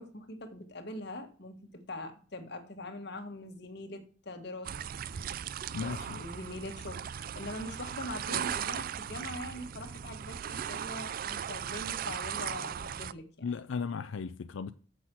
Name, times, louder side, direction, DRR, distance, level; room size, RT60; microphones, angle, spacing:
voice 1, 0.0-4.8 5.8-13.5, left 1 dB, 60° left, 1.6 m, -43 dB
sound 1, 4.6-13.1, right 8 dB, 50° right, 0.3 m, -37 dB
voice 2, 5.7-6.2 13.4-14.7, left 5 dB, 90° left, 0.4 m, -36 dB
7.5 x 6.2 x 6.1 m
head